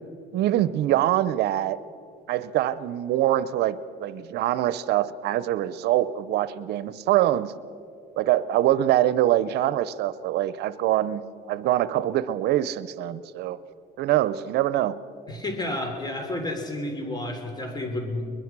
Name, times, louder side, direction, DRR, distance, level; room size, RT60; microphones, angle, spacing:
voice 1, 0.3-1.8 2.3-3.8 4.0-7.5 8.2-11.2 11.5-13.6 14.0-14.9, right 13 dB, 75° right, 16 dB, 0.7 m, -24 dB
voice 2, 15.3-18.3, left 1 dB, 25° left, 5 dB, 3.6 m, -31 dB
22.0 x 21.0 x 6.1 m, 2.5 s
cardioid pair, 110°, 17 cm